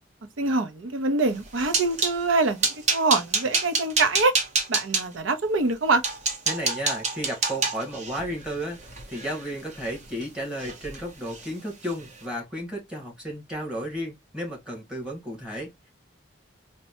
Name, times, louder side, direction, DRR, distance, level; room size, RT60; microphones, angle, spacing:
voice 1, 0.4-2.6 2.9-4.3 4.7-6.0, right 3 dB, 85° right, 0.6 m, -24 dB
sound 1, 1.3-2.2 2.6-5.0 5.6-5.7 6.0-10.2 10.6-11.0 11.3-11.5 11.9-12.0, right 4 dB, 35° right, 0.8 m, -27 dB
voice 2, 6.5-8.8 9.1-15.9, equal, 5° right, 1.4 m, -33 dB
4.2 x 2.2 x 2.7 m
head